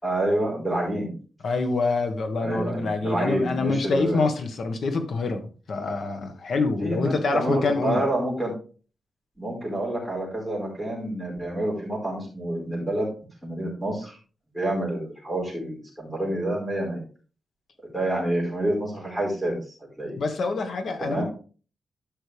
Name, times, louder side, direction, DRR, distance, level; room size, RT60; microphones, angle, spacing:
voice 1, 0.0-1.1 2.4-4.2 6.8-8.5 9.4-13.1 13.4-14.2 14.5-17.0 17.8-19.5 20.0-20.2 21.0-21.2, right 1 dB, ahead, 4.7 m, -28 dB
voice 2, 1.4-8.0 20.2-21.2, left 3 dB, 55° left, 1.5 m, -26 dB
13.0 x 5.6 x 3.5 m
wide cardioid pair, 170°, 0 cm